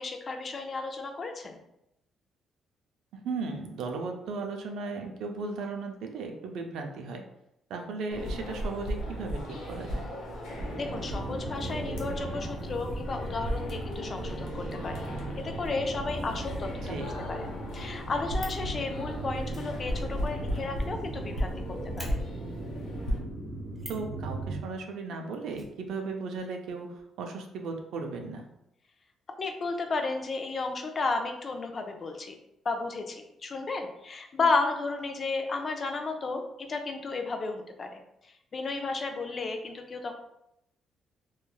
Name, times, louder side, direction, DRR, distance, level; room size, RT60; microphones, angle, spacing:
voice 1, 0.0-1.6 10.8-15.1 15.4-16.9 17.3-22.2 29.3-32.4 32.6-40.2, left 3 dB, 40° left, 4 dB, 0.4 m, -33 dB
voice 2, 3.1-7.2 7.7-10.1 16.8-17.1 23.9-28.4, right 4 dB, 80° right, 3 dB, 0.4 m, -36 dB
sound 1, 8.1-23.2, equal, 90° left, 0.6 m, -36 dB
sound 2, 10.5-24.6, right 1 dB, 30° right, 0.6 m, -38 dB
Fire, 18.3-18.7 19.4-21.2 21.5-21.6 21.9-22.1 23.7-24.1 25.5-26.4 26.7-26.8 27.0-27.1, right 1 dB, 10° right, 0.9 m, -46 dB
3.0 x 2.3 x 2.2 m, 0.81 s
cardioid pair, 90°, 0 cm